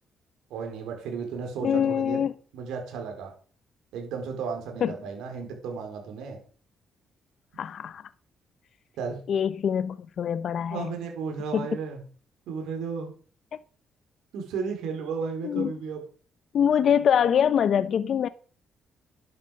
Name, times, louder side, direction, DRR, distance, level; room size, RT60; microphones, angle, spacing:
voice 1, 0.5-2.2 2.5-3.3 3.9-6.4 9.0-9.2 10.7-12.0 12.5-13.1 14.3-16.0, right 5 dB, 90° right, 4.3 m, -34 dB
voice 2, 1.6-2.3 4.8-4.9 7.6-8.0 9.3-10.9 11.5-11.7 15.4-15.7 16.5-18.3, left 8 dB, 60° left, 0.6 m, -24 dB
11.5 x 8.9 x 6.5 m
cardioid pair, 90°, 0 cm